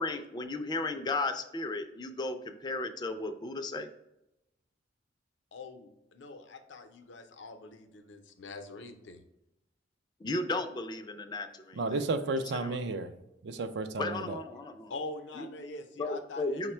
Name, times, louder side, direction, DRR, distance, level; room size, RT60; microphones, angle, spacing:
voice 1, 0.0-3.9 10.2-12.0 12.5-12.8 14.0-14.9 15.4-15.5 16.0-16.7, left 2 dB, 25° left, 0.4 m, -35 dB
voice 2, 5.5-9.2 14.9-16.7, left 2 dB, 80° left, 0.6 m, -44 dB
voice 3, 11.7-13.1 13.4-14.4, right 3 dB, 65° right, 0.4 m, -32 dB
4.9 x 2.1 x 4.3 m
head